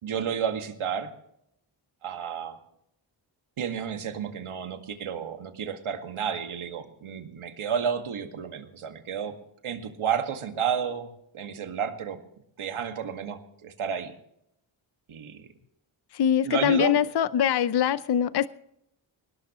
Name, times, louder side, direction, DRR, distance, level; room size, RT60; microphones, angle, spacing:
voice 1, 0.0-1.1 2.0-2.6 3.6-9.4 9.6-12.2 12.6-14.1 15.1-15.5 16.4-17.0, right 7 dB, 80° right, 2.0 m, -31 dB
voice 2, 16.1-18.5, left 9 dB, 55° left, 0.7 m, -23 dB
21.0 x 18.0 x 3.1 m
cardioid pair, 60°, 49 cm